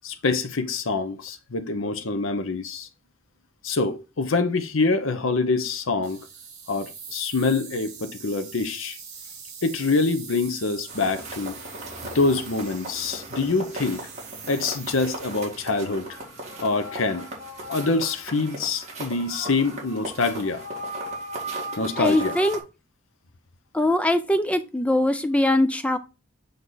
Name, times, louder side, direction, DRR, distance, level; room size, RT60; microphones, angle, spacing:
voice 1, 0.0-2.9 3.6-6.2 6.7-9.0 9.6-11.5 12.0-14.0 14.5-16.2 16.6-17.3 17.7-20.7 21.8-22.4, left 3 dB, 75° left, 0.8 m, -25 dB
sound 1, 6.0-15.5, right 6 dB, 60° right, 3.2 m, -43 dB
sound 2, 10.9-22.6, right 1 dB, 35° right, 2.0 m, -37 dB
voice 2, 22.0-22.6 23.7-26.0, left 1 dB, 5° left, 0.3 m, -22 dB
7.8 x 3.5 x 3.9 m
head